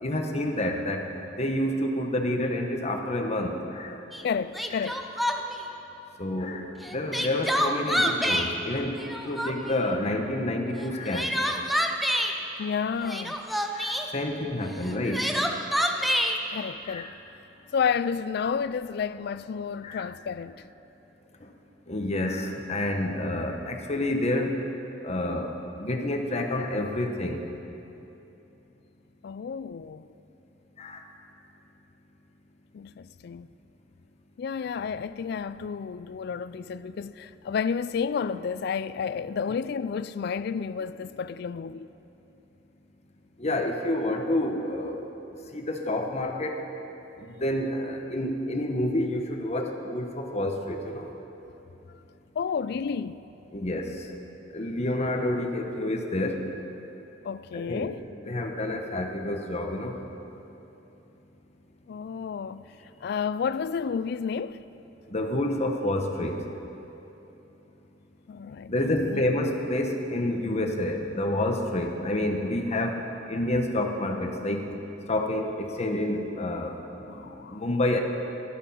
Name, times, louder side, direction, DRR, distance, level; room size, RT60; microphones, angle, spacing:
voice 1, 0.0-1.0 1.4-3.9 6.2-6.6 6.9-9.0 9.3-11.3 13.7-15.2 16.9-17.1 19.8-20.0 21.9-24.5 25.0-25.5 25.8-27.4 30.8-31.0 43.4-45.0 45.5-46.6 47.4-51.1 53.5-53.9 54.5-56.4 57.5-57.9 58.3-59.9 65.1-66.4 68.7-73.0 73.3-74.6 75.1-76.7 77.5-78.0, left 1 dB, 35° left, 1.1 m, -28 dB
Crying sobbing, 4.1-4.2 4.5-5.6 6.8-8.5 8.9-9.7 10.8-12.3 13.0-14.1 14.8-16.4, equal, ahead, 0.6 m, -27 dB
voice 2, 4.2-5.1 12.6-13.4 16.5-17.1 17.7-20.6 29.2-30.1 32.7-33.5 34.4-41.9 52.4-53.3 57.2-58.1 61.9-62.7 63.0-64.6 68.3-69.2 77.1-77.6, left 6 dB, 60° left, 0.3 m, -31 dB
13.0 x 11.5 x 5.7 m
head